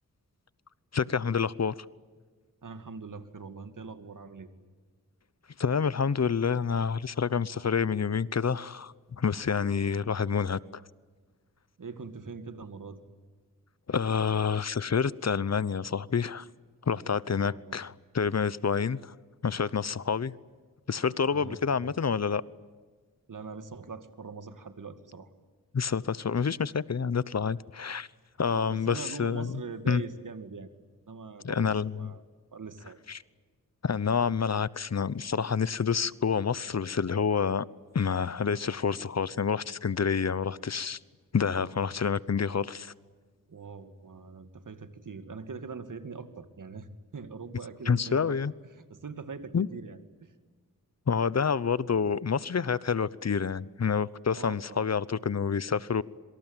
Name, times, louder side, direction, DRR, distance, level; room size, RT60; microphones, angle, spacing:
voice 1, 0.9-1.7 5.6-10.8 13.9-16.5 16.9-19.1 19.4-20.3 20.9-22.4 25.7-28.1 28.4-29.5 29.9-30.0 31.4-32.1 33.1-33.2 33.8-37.6 37.9-41.0 41.3-42.9 47.9-48.5 49.5-49.7 51.1-56.0, left 6 dB, 50° left, 0.9 m, -28 dB
voice 2, 2.6-4.5 11.8-13.0 17.3-17.8 21.3-22.0 23.3-25.3 28.5-30.7 31.1-32.2 32.5-33.0 41.5-41.8 43.5-48.4 48.7-50.3 54.3-54.9, right 4 dB, 65° right, 2.4 m, -42 dB
26.5 x 24.5 x 9.0 m
cardioid pair, 60°, 33 cm